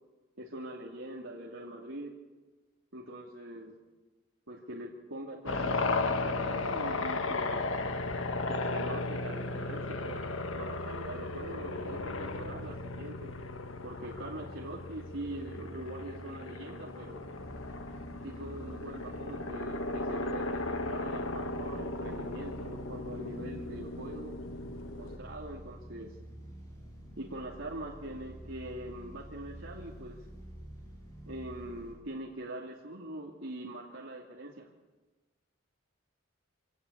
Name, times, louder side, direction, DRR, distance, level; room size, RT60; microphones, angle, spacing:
voice 1, 0.4-2.1 2.9-3.7 4.5-7.6 8.5-10.2 10.5-13.3 13.8-17.2 18.2-24.3 25.0-26.2 27.2-30.3 31.3-34.7, right 1 dB, 70° right, -2 dB, 2.6 m, -43 dB
sound 1, 5.5-25.2, left 2 dB, 75° left, 1.6 m, -36 dB
sound 2, 17.3-31.9, right 1 dB, 15° left, 7.8 m, -48 dB
25.0 x 18.5 x 8.5 m, 1.2 s
head